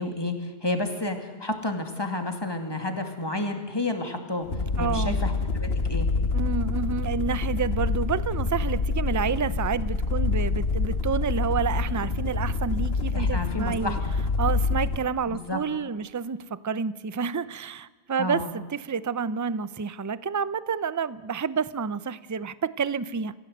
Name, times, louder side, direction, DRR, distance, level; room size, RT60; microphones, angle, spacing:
voice 1, 0.0-4.5 4.8-6.1 13.1-14.0 15.3-15.6 18.2-18.5, left 2 dB, 20° left, 5 dB, 2.5 m, -30 dB
sound 1, 4.4-15.1, left 3 dB, 55° left, 1.7 m, -27 dB
voice 2, 4.8-5.2 6.3-14.0 14.4-23.3, right 6 dB, 25° right, 16 dB, 0.4 m, -29 dB
27.5 x 15.5 x 8.0 m, 1.4 s
omnidirectional pair, 1.2 m